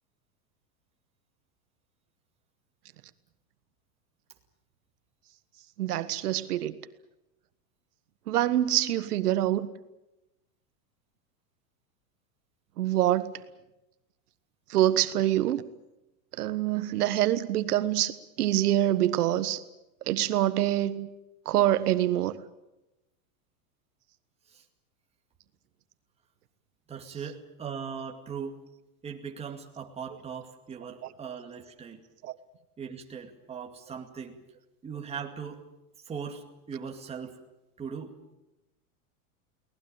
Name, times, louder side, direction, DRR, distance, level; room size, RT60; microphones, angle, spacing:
voice 1, 5.8-6.7 8.3-9.7 12.8-13.3 14.7-15.6 16.4-19.6 20.1-21.1 21.4-22.4 32.2-32.4, right 13 dB, 85° right, 12 dB, 1.4 m, -25 dB
voice 2, 26.9-28.6 29.0-32.0 32.8-34.4 34.8-35.7 36.1-37.4 37.8-38.2, right 6 dB, 15° right, 2 dB, 2.3 m, -39 dB
23.5 x 19.0 x 8.9 m, 0.95 s
supercardioid pair, 155°, 44 cm